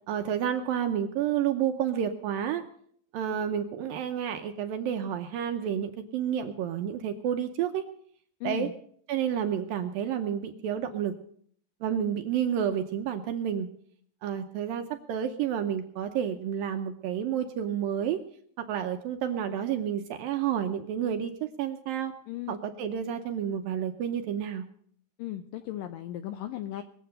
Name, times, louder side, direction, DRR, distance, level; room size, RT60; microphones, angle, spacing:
voice 1, 0.1-2.6 3.1-7.9 8.4-8.7 9.1-11.1 11.8-13.7 14.2-18.2 18.6-21.3 21.6-22.1 22.5-24.7, right 9 dB, 75° right, 6 dB, 2.2 m, -30 dB
voice 2, 8.4-8.7 22.3-22.6 25.2-26.8, left 13 dB, 85° left, 9 dB, 2.0 m, -36 dB
21.5 x 7.8 x 6.6 m, 0.62 s
omnidirectional pair, 4.8 m